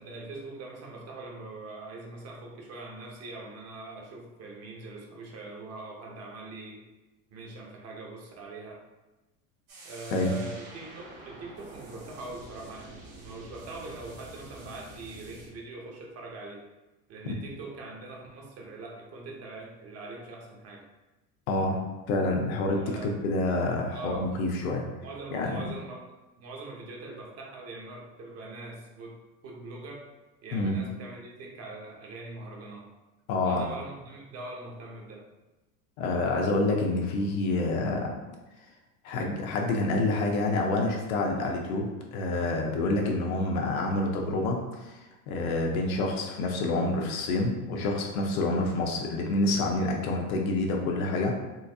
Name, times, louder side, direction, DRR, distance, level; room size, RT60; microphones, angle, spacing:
voice 1, 0.0-6.8 7.3-8.8 9.8-13.0 13.2-16.6 17.1-20.8 22.7-23.2 23.9-24.3 25.0-26.1 26.4-29.2 29.4-30.0 30.4-32.9 33.4-35.2, right 2 dB, 40° right, -1 dB, 0.8 m, -42 dB
sound 1, 9.7-15.5, right 2 dB, 55° right, 1.2 m, -47 dB
voice 2, 21.5-21.8 22.1-24.8 25.3-25.6 30.5-30.8 33.3-33.6 36.0-38.1 39.0-51.4, left 2 dB, 85° left, 1 dB, 0.8 m, -28 dB
4.0 x 2.6 x 2.4 m, 1.1 s
supercardioid pair, 125°, 41 cm